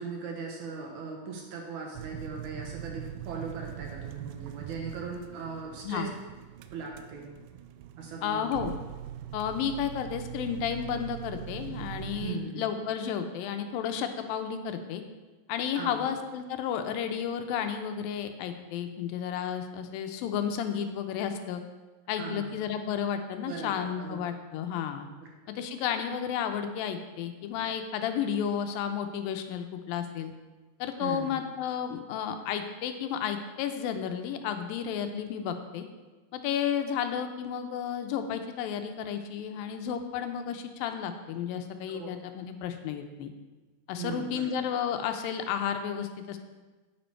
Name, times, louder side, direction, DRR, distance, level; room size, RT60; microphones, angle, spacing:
voice 1, 0.0-6.1 6.7-7.3 8.0-8.5 12.2-12.8 15.7-16.1 22.2-22.7 23.5-24.2 25.2-25.3 31.0-31.4 41.9-42.1 44.0-44.5, right 5 dB, 65° right, 1 dB, 2.3 m, -39 dB
sound 1, 1.9-12.3, right 11 dB, 85° right, 2.4 m, -42 dB
voice 2, 8.2-8.7 9.3-15.0 15.5-21.6 22.1-25.1 25.5-30.3 30.8-35.9 36.3-43.3 43.9-46.4, left 8 dB, 80° left, 7 dB, 2.5 m, -32 dB
9.5 x 8.9 x 4.5 m, 1.2 s
omnidirectional pair, 4.1 m